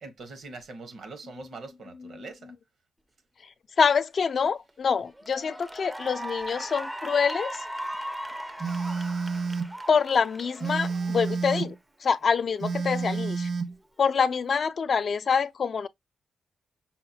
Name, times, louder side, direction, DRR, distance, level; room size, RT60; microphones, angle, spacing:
voice 1, 0.0-2.5, right 3 dB, 70° right, 1.0 m, -43 dB
voice 2, 3.8-7.6 9.9-11.8 12.0-13.5 14.0-15.9, left 6 dB, 55° left, 0.3 m, -25 dB
Cheering / Applause, 4.4-4.7 5.1-11.7, right 1 dB, 5° right, 0.4 m, -38 dB
Telephone, 8.6-9.7 10.6-11.8 12.6-13.8, right 4 dB, 55° right, 0.6 m, -30 dB
5.7 x 2.2 x 2.7 m
cardioid pair, 100°, 0 cm